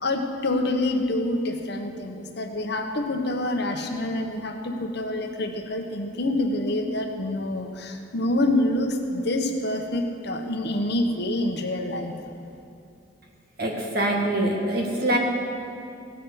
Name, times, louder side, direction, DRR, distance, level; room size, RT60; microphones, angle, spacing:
voice 1, 0.0-12.1, left 1 dB, 60° left, 3 dB, 1.3 m, -26 dB
voice 2, 13.6-15.2, right 1 dB, 55° right, -1 dB, 2.1 m, -24 dB
16.5 x 6.4 x 8.0 m, 2.5 s
head